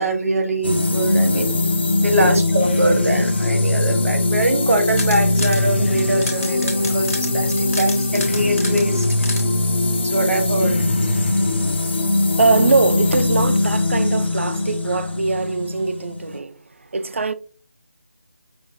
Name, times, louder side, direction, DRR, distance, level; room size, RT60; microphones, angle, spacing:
voice 1, 0.0-1.7 2.0-9.4 10.0-10.8, right 1 dB, 70° right, 1.1 m, -23 dB
sound 1, 0.6-16.4, left 2 dB, 45° left, 0.5 m, -20 dB
sound 2, 4.7-5.6 6.0-9.4, left 2 dB, 75° left, 0.9 m, -30 dB
voice 2, 12.3-16.6 16.9-17.3, right 3 dB, 55° right, 0.4 m, -21 dB
5.7 x 2.1 x 2.5 m
figure-of-eight pair, 175°, 8 cm